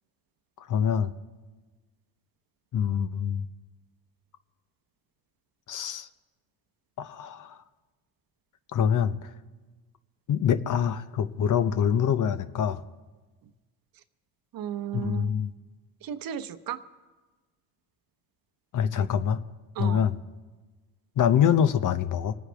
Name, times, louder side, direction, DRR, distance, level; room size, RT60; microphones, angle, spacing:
voice 1, 0.7-1.1 2.7-3.4 5.7-6.1 7.0-7.5 8.7-9.1 10.3-12.8 14.9-15.5 18.7-19.4 19.8-20.2 21.2-22.4, left 8 dB, 45° left, 13 dB, 0.8 m, -25 dB
voice 2, 14.5-15.3 16.0-16.8 19.0-19.1 19.7-20.1, right 10 dB, 55° right, 11 dB, 0.9 m, -34 dB
27.0 x 9.5 x 3.4 m, 1.3 s
supercardioid pair, 90°, 42 cm